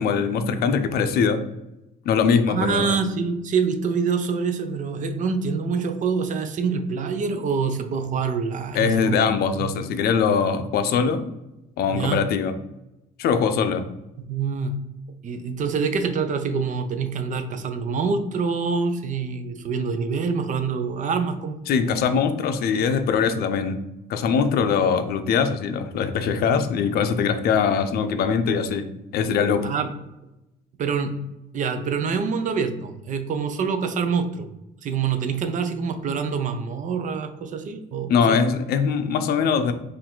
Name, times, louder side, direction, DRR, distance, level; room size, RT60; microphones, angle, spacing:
voice 1, 0.0-1.4 2.1-3.0 8.7-11.3 11.8-12.5 13.2-13.9 21.7-28.9 29.1-29.7 38.1-39.7, left 6 dB, 65° left, 9 dB, 0.5 m, -22 dB
voice 2, 2.5-9.2 9.6-9.7 11.9-12.2 14.3-14.8 15.2-21.6 29.6-29.9 30.8-31.2 31.5-34.5 34.8-38.4, right 5 dB, 50° right, 8 dB, 0.6 m, -26 dB
4.6 x 2.6 x 3.7 m, 0.93 s
cardioid pair, 110°, 17 cm